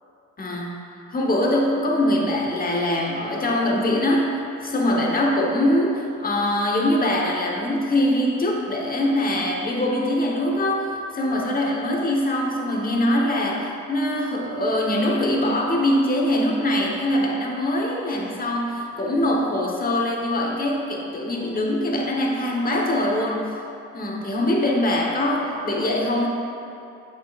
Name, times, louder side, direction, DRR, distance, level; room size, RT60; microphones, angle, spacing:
voice 1, 0.4-0.8 1.1-4.3 4.6-10.9 11.1-23.4 23.9-26.3, left 1 dB, 30° left, -1 dB, 1.1 m, -23 dB
8.5 x 5.9 x 2.4 m, 2.6 s
cardioid pair, 90°, 30 cm